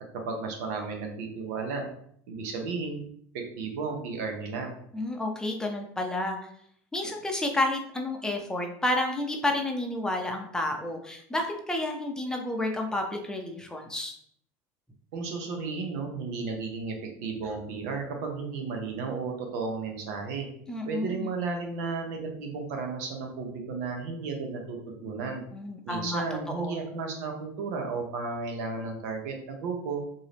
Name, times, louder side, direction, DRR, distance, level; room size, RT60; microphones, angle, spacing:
voice 1, 0.2-1.9 2.3-3.0 3.6-4.7 15.1-20.5 20.8-25.4 25.9-30.0, right 4 dB, 80° right, 2 dB, 1.0 m, -33 dB
voice 2, 4.9-6.4 6.9-14.1 20.7-21.3 25.5-26.8, left 1 dB, 10° left, 2 dB, 0.6 m, -30 dB
3.8 x 2.7 x 3.4 m, 0.65 s
supercardioid pair, 130°, 8 cm